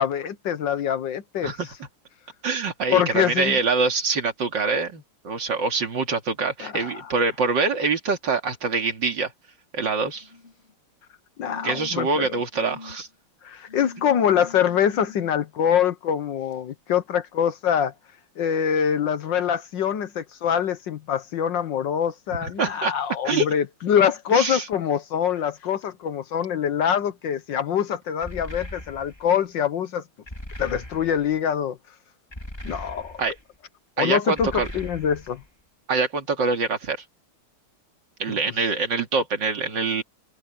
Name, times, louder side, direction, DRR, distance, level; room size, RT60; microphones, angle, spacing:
voice 1, 0.0-1.5 2.9-3.6 6.6-7.1 11.4-12.3 13.4-17.9 18.4-30.0 30.6-31.8 32.6-33.2 34.0-35.4 38.3-38.4, left 8 dB, 65° left, 1.6 m, -24 dB
voice 2, 1.4-1.7 2.4-9.3 9.7-10.3 11.6-13.1 22.4-22.9 23.2-23.5 24.3-24.7 33.2-33.3 34.0-34.7 35.9-37.0 38.2-40.0, right 4 dB, 55° right, 3.0 m, -25 dB
sound 1, 10.1-10.7 11.4-12.1 12.5-13.0 13.7-15.3 16.5-16.6, left 4 dB, 30° left, 3.7 m, -43 dB
sound 2, 28.2-29.3 30.3-31.3 32.3-33.4 34.4-35.4, left 1 dB, 10° left, 3.0 m, -39 dB
omnidirectional pair, 2.3 m